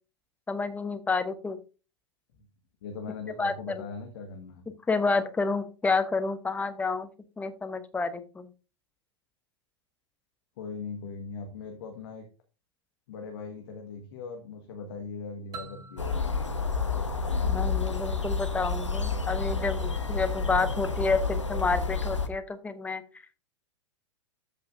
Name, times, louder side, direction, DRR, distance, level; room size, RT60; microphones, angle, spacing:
voice 1, 0.5-1.6 3.4-3.8 4.9-7.1 7.4-8.5 17.5-23.0, left 4 dB, 10° left, 9 dB, 0.9 m, -29 dB
voice 2, 2.8-4.7 10.6-12.2 13.1-16.0, left 4 dB, 55° left, 3 dB, 1.5 m, -40 dB
sound 1, 15.5-18.2, right 4 dB, 25° right, 2.0 m, -48 dB
sound 2, 16.0-22.3, left 4 dB, 85° left, 1.0 m, -29 dB
13.5 x 5.5 x 2.6 m, 0.32 s
figure-of-eight pair, 95°, 15 cm